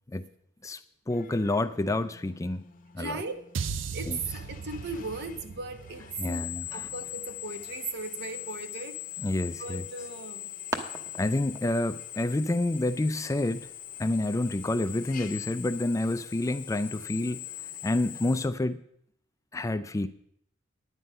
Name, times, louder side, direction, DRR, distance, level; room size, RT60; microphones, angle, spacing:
voice 1, 0.6-2.6 2.9-3.1 4.1-4.2 6.2-6.8 9.2-9.8 11.2-13.7 14.0-17.4 17.8-18.8 19.5-20.1, left 2 dB, 15° left, 12 dB, 0.4 m, -28 dB
Drill, 1.1-18.5, left 12 dB, 45° left, 0.9 m, -42 dB
voice 2, 3.0-3.5 3.9-9.0 9.6-10.5, right 3 dB, 60° right, 8 dB, 1.0 m, -37 dB
sound 1, 3.5-7.9, right 5 dB, 80° right, 0.5 m, -38 dB
sound 2, 9.8-14.9, right 1 dB, 15° right, 1.0 m, -43 dB
10.0 x 9.4 x 5.4 m, 0.71 s
head